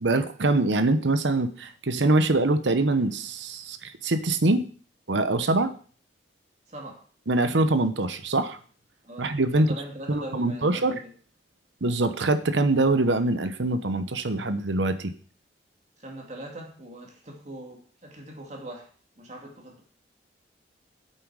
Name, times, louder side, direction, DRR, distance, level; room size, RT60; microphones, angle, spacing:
voice 1, 0.0-4.7 5.1-5.7 7.3-8.6 9.2-9.7 10.1-11.0 11.8-15.1, right 2 dB, 90° right, 11 dB, 1.0 m, -24 dB
voice 2, 6.7-7.0 9.0-11.1 16.0-18.9 19.2-19.8, right 1 dB, 40° right, 1 dB, 2.3 m, -41 dB
8.7 x 7.7 x 4.8 m, 0.43 s
head